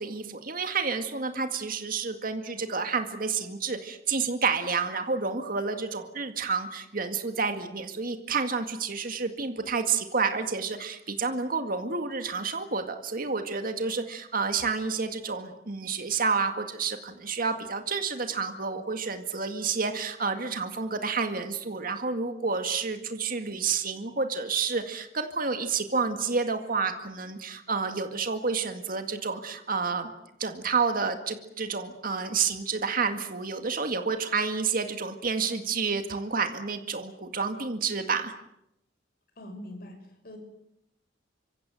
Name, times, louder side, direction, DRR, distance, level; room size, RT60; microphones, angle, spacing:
voice 1, 0.0-30.1 30.4-38.3, right 5 dB, 50° right, 7 dB, 2.0 m, -29 dB
voice 2, 39.3-40.4, left 1 dB, 50° left, 5 dB, 6.8 m, -43 dB
25.5 x 25.0 x 7.8 m, 0.81 s
head